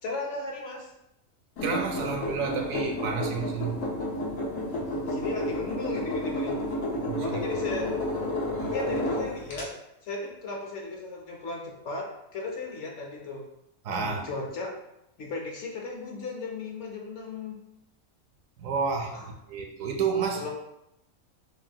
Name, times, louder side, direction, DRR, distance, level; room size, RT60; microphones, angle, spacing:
voice 1, 0.0-0.9 4.8-6.6 7.2-7.9 8.6-9.7 10.0-13.5 14.0-14.7 15.2-17.6 19.1-19.3 20.3-20.5, left 3 dB, 60° left, 0 dB, 0.9 m, -36 dB
sound 1, 1.6-9.6, left 1 dB, 85° left, 1.5 m, -31 dB
voice 2, 1.6-3.8 7.0-7.6 8.5-8.7 13.8-14.3 18.6-19.2 19.5-20.4, right 5 dB, 70° right, 3 dB, 0.9 m, -30 dB
5.2 x 2.4 x 2.8 m, 0.84 s
omnidirectional pair, 1.5 m